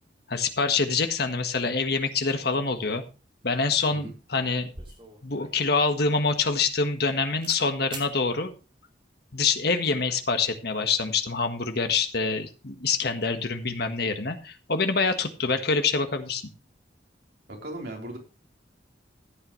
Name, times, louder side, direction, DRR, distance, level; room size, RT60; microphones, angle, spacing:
voice 1, 0.3-3.0 3.4-4.7 5.2-8.5 9.3-16.4, left 4 dB, 60° left, 7 dB, 1.5 m, -26 dB
sound 1, 4.7-7.1 7.4-7.6 7.9-8.1, right 3 dB, 30° right, 2.7 m, -44 dB
voice 2, 17.6-18.2, right 1 dB, 65° right, 0 dB, 3.9 m, -37 dB
15.0 x 9.0 x 3.2 m, 0.31 s
head